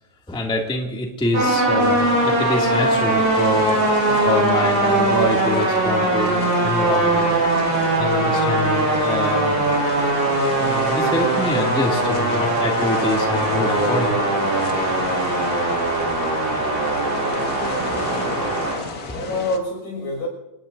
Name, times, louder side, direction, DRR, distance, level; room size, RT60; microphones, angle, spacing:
voice 1, 0.3-4.0 4.2-7.4 8.0-9.7 10.6-14.3 15.2-15.6 17.2-19.2, left 1 dB, ahead, 1.9 m, -26 dB
sound 1, 1.3-18.8, right 2 dB, 60° right, 9.0 m, -20 dB
sound 2, 1.8-19.6, left 4 dB, 45° left, 1.3 m, -33 dB
voice 2, 17.2-17.9 19.1-20.3, left 2 dB, 75° left, 7.7 m, -29 dB
27.0 x 19.5 x 2.7 m
omnidirectional pair, 3.4 m